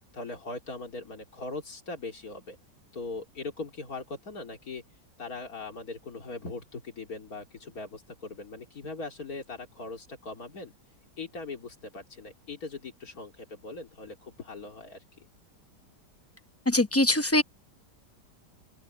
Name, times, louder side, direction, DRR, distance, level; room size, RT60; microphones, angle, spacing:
voice 1, 0.1-2.6 2.9-4.8 5.2-10.7 11.2-15.3, left 3 dB, 55° left, 3.5 m, -40 dB
voice 2, 16.7-17.4, left 1 dB, 20° left, 0.4 m, -22 dB
open air
omnidirectional pair, 1.9 m